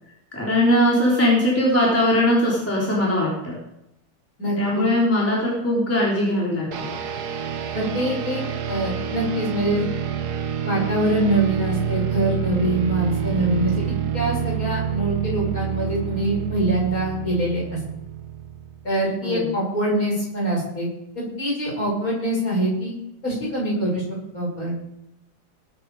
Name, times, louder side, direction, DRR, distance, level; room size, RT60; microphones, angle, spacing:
voice 1, 0.3-3.6 4.6-6.9 19.2-19.5, left 1 dB, 5° left, -5 dB, 3.6 m, -20 dB
voice 2, 4.4-4.8 7.7-8.4 8.7-9.9 10.6-17.6 18.8-20.9 21.2-22.9 23.2-24.0 24.3-24.8, right 1 dB, 40° left, -4 dB, 7.1 m, -24 dB
sound 1, 6.7-18.9, right 9 dB, 55° right, 1.5 m, -28 dB
19.5 x 9.3 x 5.0 m, 0.86 s
omnidirectional pair, 2.2 m